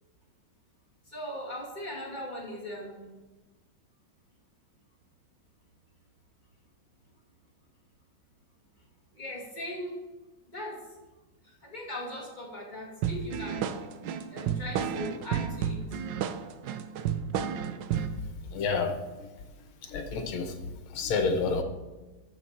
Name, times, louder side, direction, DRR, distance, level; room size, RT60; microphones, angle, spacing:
voice 1, 1.1-3.1 9.1-9.9 10.5-10.8 11.4-13.7 14.3-15.8, left 1 dB, 20° left, -3 dB, 2.2 m, -39 dB
sound 1, 13.0-18.2, right 8 dB, 70° right, 1.3 m, -31 dB
voice 2, 18.5-19.3 19.8-20.6 20.9-21.6, left 4 dB, 80° left, 6 dB, 1.9 m, -29 dB
14.0 x 6.0 x 4.2 m, 1.2 s
omnidirectional pair, 2.2 m